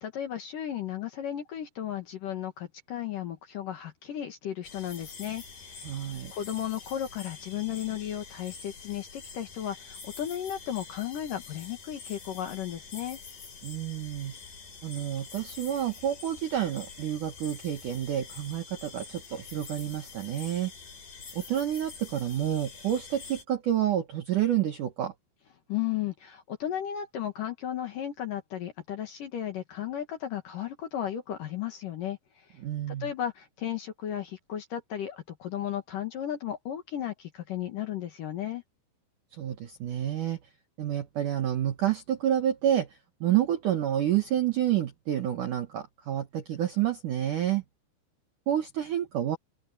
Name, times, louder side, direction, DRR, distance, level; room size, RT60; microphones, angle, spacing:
voice 1, 0.0-5.9 6.3-13.2 25.7-32.2 32.9-38.6, left 10 dB, 60° left, 2.5 m, -34 dB
sound 1, 4.6-23.4, left 5 dB, 45° left, 6.1 m, -46 dB
voice 2, 5.8-6.3 13.6-14.4 14.8-20.7 21.3-25.1 32.6-33.1 39.4-40.4 40.8-42.9 43.2-47.6 48.5-49.4, right 11 dB, 70° right, 2.0 m, -29 dB
open air
omnidirectional pair, 5.5 m